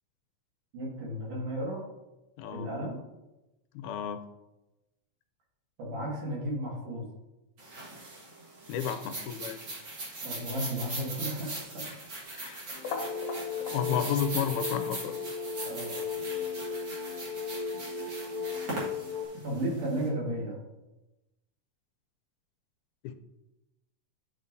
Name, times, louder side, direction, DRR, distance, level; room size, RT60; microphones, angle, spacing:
voice 1, 0.7-1.8 2.5-3.0 5.8-7.0 10.2-11.8 13.7-14.0 15.6-16.0 19.4-20.6, right 1 dB, 90° right, -3 dB, 3.5 m, -34 dB
voice 2, 2.4-2.7 3.8-4.2 8.7-9.6 12.3-12.6 13.7-15.1 23.0-23.1, left 8 dB, 80° left, 9 dB, 1.9 m, -32 dB
sound 1, 7.6-20.0, right 2 dB, 40° right, 1.9 m, -40 dB
sound 2, 12.7-19.3, left 5 dB, 65° left, 1.9 m, -35 dB
11.0 x 5.2 x 2.7 m, 0.98 s
omnidirectional pair, 3.6 m